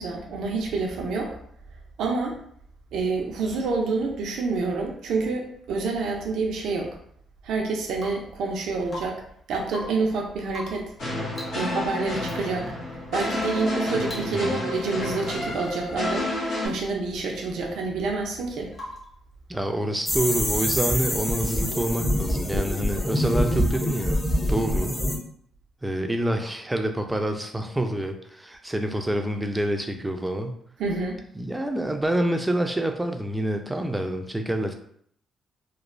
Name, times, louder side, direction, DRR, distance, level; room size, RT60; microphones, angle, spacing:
voice 1, 0.0-1.3 2.0-2.4 2.9-7.0 7.4-9.2 9.5-10.9 11.5-12.7 13.1-16.3 16.6-18.7 30.8-31.2, right 3 dB, 80° right, 0 dB, 0.5 m, -28 dB
Rain / Water tap faucet / Drip, 7.9-8.3 8.9-9.3 9.6-10.1 10.5-10.9 11.3-11.7 12.2-12.4 13.1-13.4 13.7-13.8 14.0-14.6 14.9-15.3 16.0-16.3 18.7-19.2 21.1-21.2, left 1 dB, 40° left, 1.0 m, -41 dB
sound 1, 11.0-16.7, left 1 dB, 75° left, 1.2 m, -29 dB
voice 2, 14.3-14.7 19.5-24.2 24.5-25.0 25.8-30.6 31.4-34.7, right 1 dB, 10° right, 5 dB, 0.4 m, -27 dB
sound 2, 20.1-25.2, equal, 25° left, 0.7 m, -25 dB
3.0 x 2.0 x 2.5 m, 0.65 s
cardioid pair, 90°, 0 cm